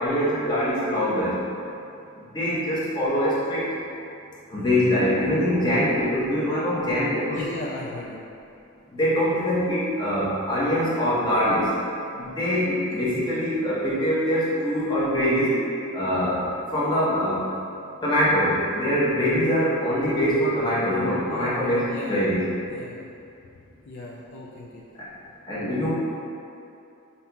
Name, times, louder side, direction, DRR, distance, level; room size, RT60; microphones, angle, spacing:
voice 1, 0.0-1.4 2.2-3.7 4.5-7.4 8.9-11.7 12.1-15.6 15.9-17.5 18.0-22.4 25.5-25.9, equal, 20° left, -9 dB, 0.8 m, -23 dB
voice 2, 7.3-8.2 21.3-22.3 22.7-23.1 23.9-24.8, left 2 dB, 60° left, -5 dB, 0.4 m, -36 dB
5.4 x 2.8 x 2.2 m, 2.6 s
head